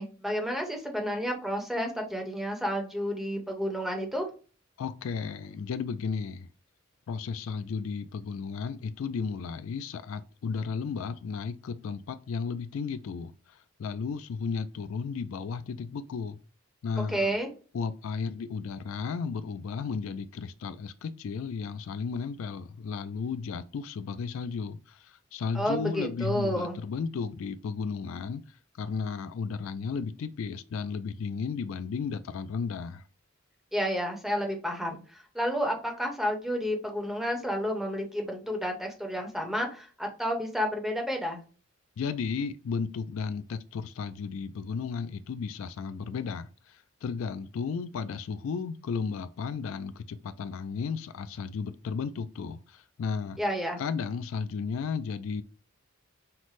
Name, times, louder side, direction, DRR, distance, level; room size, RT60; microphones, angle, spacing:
voice 1, 0.0-4.3 17.0-17.5 25.5-26.8 33.7-41.4 53.4-53.8, equal, ahead, 0.9 m, -31 dB
voice 2, 4.8-6.5 7.1-16.4 16.8-17.3 17.7-28.4 28.8-33.0 42.0-53.4 53.8-55.4, left 5 dB, 70° left, 0.3 m, -34 dB
5.7 x 2.1 x 3.1 m
head